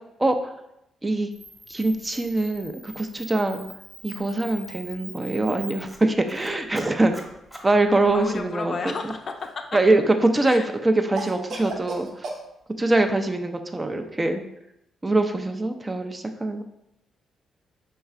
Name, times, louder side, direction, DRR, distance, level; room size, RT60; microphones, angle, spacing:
voice 1, 0.2-0.5 1.0-1.3 1.7-3.6 4.0-7.1 7.6-8.7 9.7-12.1 12.8-14.4 15.0-16.6, right 2 dB, 25° right, 6 dB, 0.5 m, -23 dB
Camera, 1.3-8.5, equal, 5° right, 1.1 m, -44 dB
voice 2, 8.1-9.8 10.4-10.7, left 4 dB, 55° left, 4 dB, 0.4 m, -32 dB
Cough, 8.9-9.7 11.2-12.4, right 2 dB, 65° right, 0.6 m, -35 dB
4.6 x 3.1 x 2.4 m, 0.82 s
hypercardioid pair, 45°, 0 cm